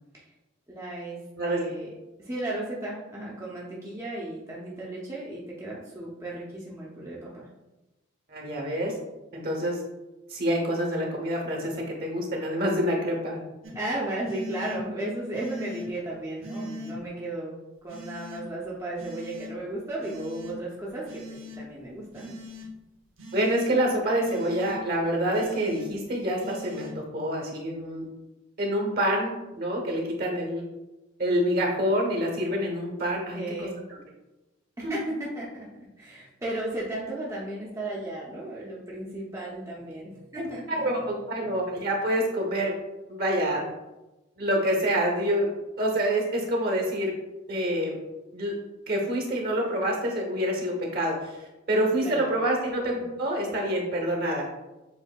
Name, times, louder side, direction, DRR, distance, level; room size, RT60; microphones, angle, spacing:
voice 1, 0.7-1.9 2.2-7.5 13.7-17.6 17.8-22.4 33.3-33.8 34.8-35.7 36.0-40.8 52.0-52.3, right 1 dB, 15° right, -6 dB, 0.5 m, -35 dB
voice 2, 8.3-8.9 9.3-9.8 10.3-13.4 23.3-28.0 28.6-30.6 31.2-33.7 34.8-34.9 40.4-42.7 43.1-43.6 44.4-45.5 45.8-47.1 47.5-48.0 48.3-48.5 48.9-54.5, right 1 dB, 50° right, 1 dB, 0.9 m, -27 dB
sound 1, 13.6-13.7 14.2-14.8 15.3-15.9 16.4-16.9 17.9-18.4 19.0-19.5 20.0-20.5 21.1-21.6 22.1-22.7 23.2-23.7 24.2-24.8 25.3-25.8 26.4-26.9, equal, 85° right, 0.9 m, -40 dB
7.1 x 2.7 x 2.2 m, 1.0 s
head